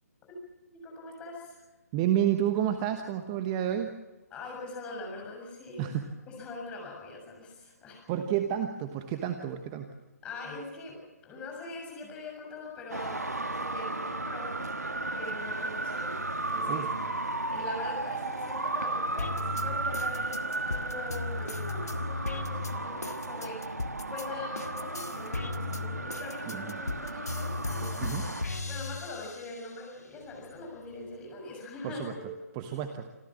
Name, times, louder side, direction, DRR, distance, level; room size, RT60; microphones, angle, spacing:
voice 1, 0.7-1.6 4.3-5.9 6.3-8.0 10.2-28.0 28.6-32.3, left 3 dB, 10° left, 0 dB, 6.7 m, -43 dB
voice 2, 1.9-3.9 5.8-6.1 8.1-9.9 16.7-16.9 26.4-26.8 28.0-28.2 31.8-32.1 32.6-33.1, right 10 dB, 20° right, 7 dB, 1.1 m, -30 dB
Traffic noise roadway noise, 12.9-28.4, right 2 dB, 75° right, 1.5 m, -34 dB
sound 1, 19.2-24.3 24.6-29.8 30.2-31.2, left 3 dB, 75° left, 1.7 m, -36 dB
27.0 x 14.5 x 7.4 m, 1.2 s
figure-of-eight pair, 140°, 9 cm